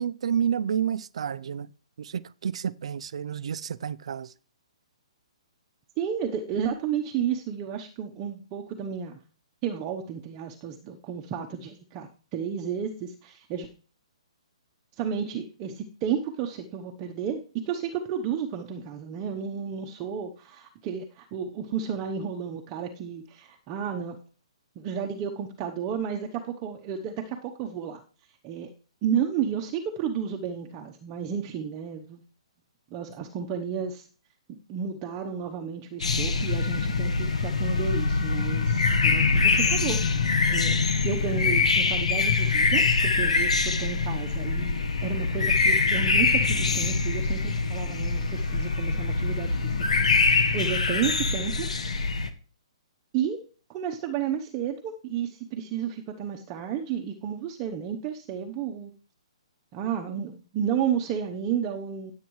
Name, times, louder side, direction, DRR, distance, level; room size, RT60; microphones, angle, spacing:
voice 1, 0.0-1.7 2.0-4.3, right 8 dB, 65° right, 0.5 m, -29 dB
voice 2, 6.0-9.2 9.6-13.7 14.9-17.4 17.7-24.2 24.8-28.0 28.4-28.7 29.0-32.2 32.9-34.1 34.5-40.2 40.5-40.8 41.0-44.7 45.0-49.7 50.5-51.7 53.1-53.4 53.7-58.9 59.7-62.1, right 8 dB, 25° right, 0.9 m, -32 dB
sound 1, 36.0-52.3, left 4 dB, 90° left, 1.4 m, -24 dB
16.0 x 8.3 x 3.2 m
hypercardioid pair, 155°, 3 cm